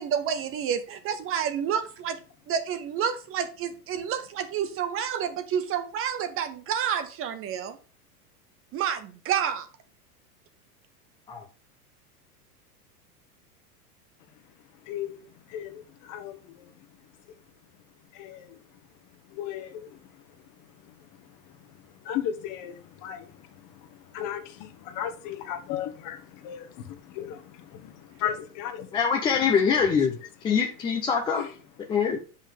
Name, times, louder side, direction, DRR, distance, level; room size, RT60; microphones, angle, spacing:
voice 1, 0.0-2.2 2.5-7.8 8.7-9.7, right 8 dB, 30° right, 0.6 m, -29 dB
voice 2, 14.3-17.2 18.1-18.8 19.1-29.0 29.3-30.0 30.2-30.3 30.7-30.8 31.3-31.6 31.8-31.9, left 10 dB, 45° left, 1.2 m, -37 dB
voice 3, 28.9-30.1 30.4-31.4 31.9-32.2, left 6 dB, 10° left, 0.3 m, -23 dB
7.1 x 5.4 x 3.5 m
hypercardioid pair, 100°, 46 cm